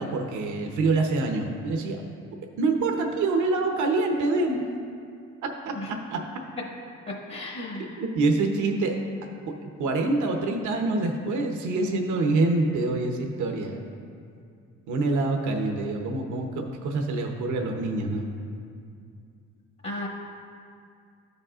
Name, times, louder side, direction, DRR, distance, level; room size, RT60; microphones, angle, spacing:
voice 1, 0.0-2.0 2.6-4.6 5.7-6.2 7.8-9.0 9.5-13.8 14.9-18.3, right 3 dB, 75° right, 3 dB, 0.8 m, -26 dB
voice 2, 7.1-8.0 19.8-20.1, left 2 dB, 40° left, -2 dB, 1.0 m, -34 dB
13.0 x 5.3 x 2.4 m, 2.4 s
cardioid pair, 90°, 30 cm